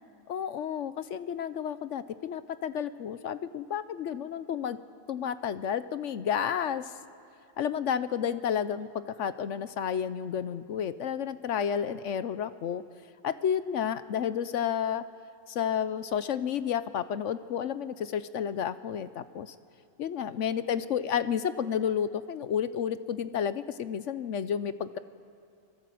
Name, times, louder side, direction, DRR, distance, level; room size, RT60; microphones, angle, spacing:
voice 1, 0.3-4.8 5.1-6.9 7.6-8.9 9.2-12.8 13.2-15.0 15.5-19.5 20.0-25.0, left 8 dB, 65° left, 13 dB, 1.0 m, -31 dB
26.0 x 19.5 x 7.7 m, 2.7 s
omnidirectional pair, 1.4 m